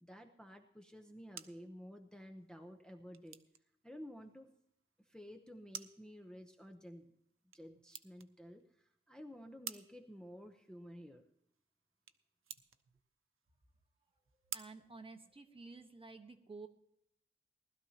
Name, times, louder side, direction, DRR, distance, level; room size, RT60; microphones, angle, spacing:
voice 1, 0.0-3.4 3.8-4.5 5.0-7.1 7.5-11.2, equal, 5° left, 3 dB, 0.8 m, -52 dB
sound 1, 0.9-15.9, right 7 dB, 85° right, 0.7 m, -55 dB
voice 2, 14.4-16.7, right 3 dB, 25° right, 5 dB, 1.2 m, -52 dB
19.5 x 12.5 x 2.9 m, 0.72 s
wide cardioid pair, 155°, 21 cm